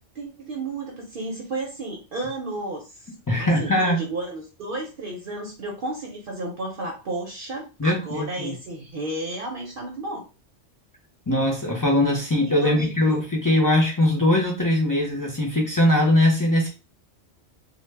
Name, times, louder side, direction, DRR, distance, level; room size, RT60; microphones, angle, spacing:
voice 1, 0.1-10.2 12.6-13.2, right 2 dB, 60° right, 0 dB, 0.7 m, -33 dB
voice 2, 3.3-4.0 7.8-8.5 11.3-16.7, left 1 dB, 30° left, -2 dB, 0.4 m, -21 dB
2.1 x 2.0 x 3.2 m, 0.31 s
omnidirectional pair, 1.2 m